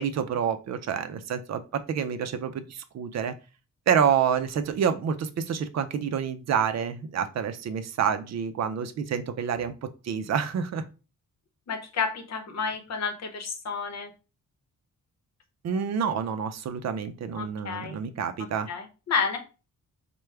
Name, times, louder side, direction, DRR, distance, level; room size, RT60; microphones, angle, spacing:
voice 1, 0.0-1.6 1.9-3.3 3.9-9.7 10.0-10.8 15.6-18.7, right 7 dB, 55° right, 9 dB, 0.5 m, -28 dB
voice 2, 11.7-14.1 17.3-18.0 18.7-19.4, left 5 dB, 55° left, 5 dB, 0.9 m, -30 dB
4.6 x 2.2 x 3.3 m, 0.32 s
wide cardioid pair, 140°, 32 cm